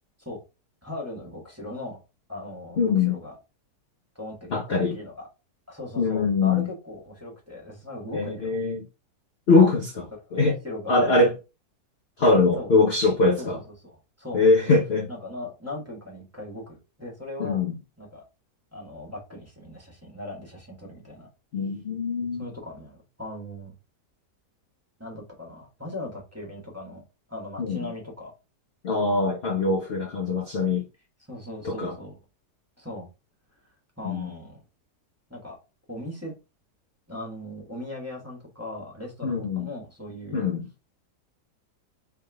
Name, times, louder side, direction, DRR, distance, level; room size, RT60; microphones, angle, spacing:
voice 1, 0.8-2.0 2.3-3.4 4.1-5.3 5.7-8.6 10.2-10.4 10.6-11.1 12.5-12.7 13.4-14.4 15.1-17.6 18.0-18.2 18.7-21.3 22.4-23.8 25.0-27.0 27.3-28.3 31.3-32.2 32.8-33.1 34.0-34.6 35.3-35.6 35.9-36.3 37.1-40.4, left 1 dB, 10° right, 1.4 m, -38 dB
voice 2, 2.8-3.2 4.5-5.0 6.0-6.7 8.1-8.8 9.5-10.6 10.9-11.3 12.2-13.6 14.3-15.1 17.4-17.8 21.5-22.5 27.6-27.9 28.8-30.8 31.6-31.9 34.0-34.3 39.2-39.7 40.3-40.6, left 3 dB, 50° left, 0.8 m, -22 dB
3.5 x 3.5 x 3.4 m
omnidirectional pair, 1.8 m